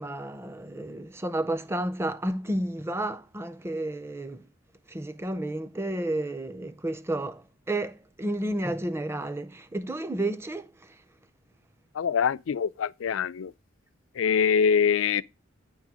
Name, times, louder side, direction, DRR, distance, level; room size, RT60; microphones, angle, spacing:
voice 1, 0.0-4.4 4.9-10.9, right 1 dB, 10° right, 0.5 m, -31 dB
voice 2, 11.9-13.5 14.2-15.2, left 7 dB, 75° left, 0.4 m, -24 dB
9.8 x 3.7 x 6.1 m
head